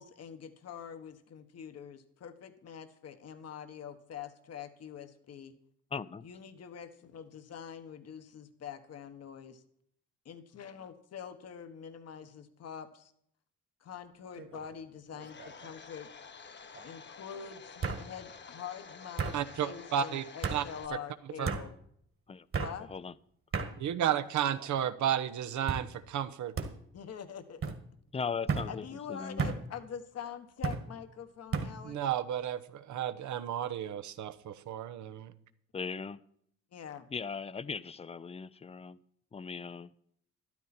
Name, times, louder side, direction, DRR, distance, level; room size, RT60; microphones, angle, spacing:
voice 1, 0.0-5.5 6.2-9.6 10.2-13.1 13.8-16.1 16.8-21.7 22.6-22.9 26.9-27.7 28.7-32.0 36.7-37.1, left 8 dB, 55° left, 9 dB, 1.4 m, -45 dB
voice 2, 5.9-6.3 22.3-22.5 22.9-23.1 28.1-29.5 35.7-36.2 37.1-39.0 39.3-39.9, left 5 dB, 20° left, 17 dB, 0.5 m, -38 dB
sound 1, 14.4-14.8 15.1-15.7 16.8-16.9 17.8-18.0 19.2-19.4 20.4-20.6 21.4-21.6 22.5-22.8 23.5-23.7 24.5-24.9 25.7-25.9 26.6-26.7 27.6-27.8 28.5-28.7 29.4-29.6 30.6-30.8 31.5-31.7, right 5 dB, 45° right, 1.8 m, -33 dB
Domestic sounds home sounds, 15.2-20.9, left 5 dB, 35° left, 1.1 m, -50 dB
voice 3, 19.3-20.2 20.5-20.6 20.9-21.0 21.4-21.5 23.8-26.5 31.8-35.3, right 10 dB, 75° right, 11 dB, 1.0 m, -32 dB
13.0 x 12.0 x 4.3 m, 0.68 s
cardioid pair, 90°, 30 cm